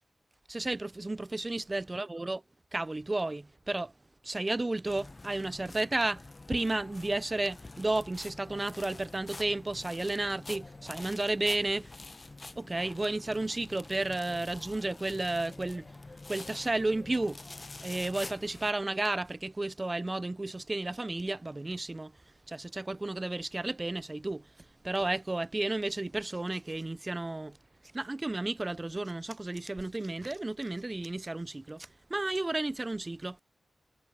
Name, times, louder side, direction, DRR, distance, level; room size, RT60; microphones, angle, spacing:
voice 1, 0.5-2.4 2.7-3.9 4.2-6.2 6.5-11.9 12.6-15.9 16.3-22.1 22.5-24.4 24.8-27.6 27.9-33.4, right 2 dB, 30° right, 0.3 m, -32 dB
sound 1, 4.9-18.7, left 2 dB, 35° left, 0.5 m, -47 dB
cardioid pair, 60°, 0 cm